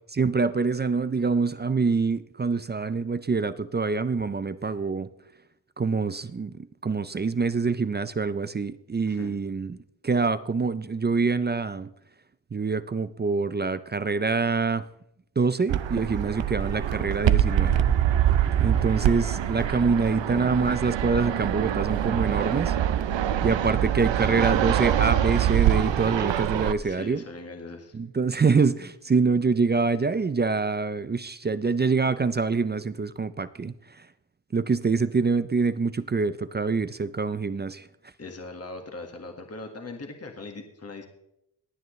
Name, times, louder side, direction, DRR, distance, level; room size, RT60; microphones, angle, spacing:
voice 1, 0.1-5.1 5.8-9.8 10.0-11.9 12.5-14.8 15.4-17.7 18.5-22.7 23.4-27.2 27.9-34.1 34.5-37.9, right 4 dB, 25° right, 14 dB, 0.4 m, -25 dB
voice 2, 9.1-9.4 18.6-19.0 26.8-28.0 38.2-41.1, left 3 dB, 35° left, 4 dB, 1.6 m, -40 dB
Fixed-wing aircraft airplane, 15.7-26.7, right 10 dB, 85° right, 0.8 m, -24 dB
18.0 x 9.4 x 3.1 m, 0.80 s
wide cardioid pair, 105°, 43 cm